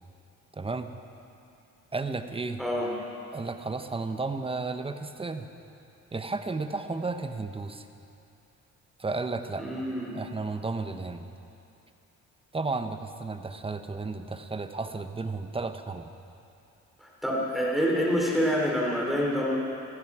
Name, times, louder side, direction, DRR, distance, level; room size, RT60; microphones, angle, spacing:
voice 1, 0.5-0.9 1.9-2.6 3.3-5.5 6.1-7.9 9.0-9.6 10.1-11.3 12.5-16.1, right 3 dB, 20° right, 8 dB, 0.9 m, -33 dB
voice 2, 2.6-2.9 9.6-10.1 17.0-19.6, equal, ahead, -3 dB, 3.2 m, -27 dB
16.0 x 15.0 x 4.9 m, 2.7 s
cardioid pair, 90°, 30 cm